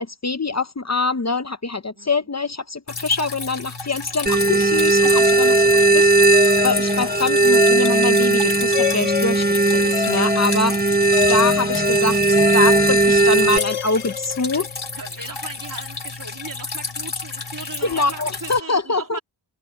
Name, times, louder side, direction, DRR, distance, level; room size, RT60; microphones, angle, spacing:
voice 1, 0.0-9.5 9.7-10.8 11.3-12.2 12.5-14.7 17.8-19.2, left 3 dB, 35° left, 0.9 m, -24 dB
Drip, 2.9-18.6, left 4 dB, 55° left, 4.8 m, -32 dB
sound 1, 4.3-13.6, right 2 dB, 20° right, 1.5 m, -17 dB
sound 2, 5.1-14.9, left 8 dB, 85° left, 0.9 m, -28 dB
voice 2, 14.9-19.2, right 4 dB, 40° right, 3.2 m, -38 dB
wide cardioid pair, 80°, 49 cm